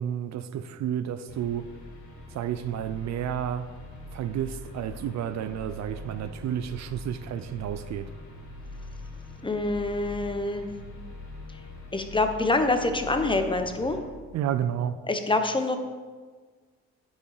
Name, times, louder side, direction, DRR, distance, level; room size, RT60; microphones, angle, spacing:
voice 1, 0.0-1.7 2.3-3.7 4.1-8.1 14.3-15.0, right 9 dB, 65° right, 0.5 m, -31 dB
sound 1, 1.3-14.0, left 2 dB, 70° left, 1.9 m, -43 dB
voice 2, 9.4-10.7 11.9-14.0 15.1-15.8, left 2 dB, 15° left, 0.7 m, -26 dB
8.5 x 4.7 x 4.8 m
cardioid pair, 90°, 30 cm